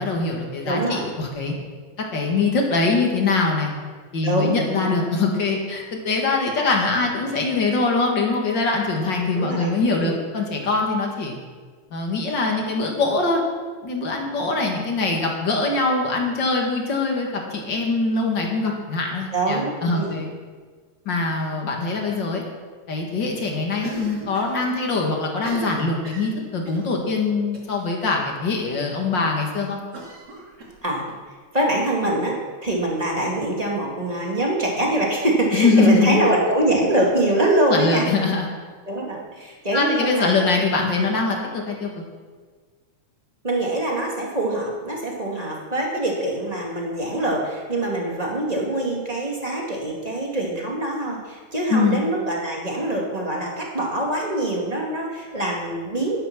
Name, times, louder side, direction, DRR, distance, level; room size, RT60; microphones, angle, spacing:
voice 1, 0.0-1.5 2.1-3.7 4.1-11.4 11.9-13.4 13.8-20.3 21.1-22.4 22.9-29.8 35.5-36.2 37.7-38.5 39.7-41.9 51.7-52.0, left 3 dB, 40° left, 1 dB, 2.1 m, -23 dB
voice 2, 0.7-1.0 4.2-4.9 9.3-9.7 10.0-10.2 19.3-20.2 30.8-31.0 31.5-32.3 32.6-38.0 38.9-40.4 40.9-41.1 43.4-56.2, right 1 dB, 15° right, -2 dB, 1.8 m, -24 dB
Cough, 23.8-24.6 24.8-24.9 25.3-26.9 27.5-27.8 28.1-28.2 28.6-28.7 29.9-31.2, right 3 dB, 35° right, 2.6 m, -38 dB
12.0 x 10.0 x 6.0 m, 1.5 s
omnidirectional pair, 3.4 m